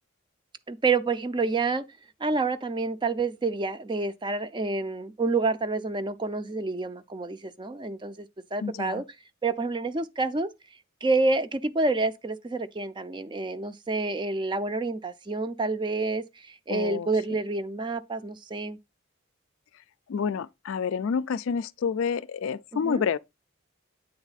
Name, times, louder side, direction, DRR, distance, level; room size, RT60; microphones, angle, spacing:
voice 1, 0.7-1.8 2.2-9.0 9.4-10.5 11.0-18.8 22.8-23.0, right 3 dB, 20° right, 0.4 m, -28 dB
voice 2, 8.6-9.0 16.7-17.1 20.1-23.2, left 6 dB, 70° left, 0.4 m, -28 dB
8.8 x 3.6 x 4.0 m
head